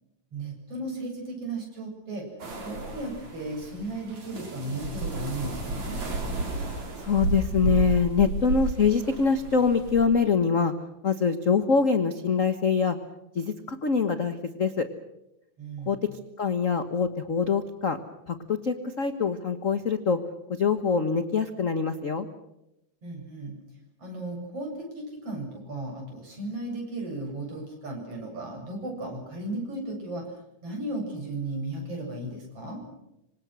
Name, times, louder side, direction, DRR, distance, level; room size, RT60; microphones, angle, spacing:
voice 1, 0.3-2.3 2.6-6.0 15.6-15.9 23.0-23.5 24.0-30.2 30.6-32.8, right 2 dB, 50° right, 0 dB, 9.0 m, -35 dB
sound 1, 2.4-10.0, right 3 dB, 65° right, 6.2 m, -32 dB
voice 2, 7.0-10.7 11.0-13.0 13.3-14.9 15.9-16.1 16.4-18.0 18.3-20.2 20.5-22.3, left 5 dB, 50° left, 9 dB, 0.9 m, -24 dB
26.5 x 26.0 x 6.3 m, 0.86 s
omnidirectional pair, 3.5 m